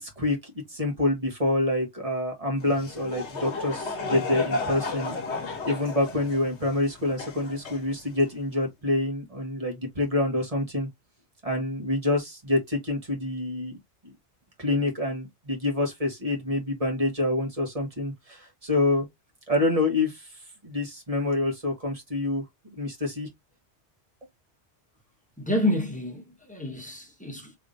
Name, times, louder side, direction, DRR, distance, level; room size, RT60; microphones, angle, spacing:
voice 1, 0.0-5.1 5.6-10.9 11.4-13.8 14.6-19.1 19.5-20.3 20.6-22.4 22.8-23.3, left 2 dB, 30° right, 1.5 m, -27 dB
Laughter / Crowd, 2.6-8.3, left 3 dB, 70° left, 1.2 m, -33 dB
voice 2, 25.4-27.6, left 1 dB, 5° left, 1.2 m, -29 dB
3.4 x 3.4 x 2.5 m
omnidirectional pair, 1.2 m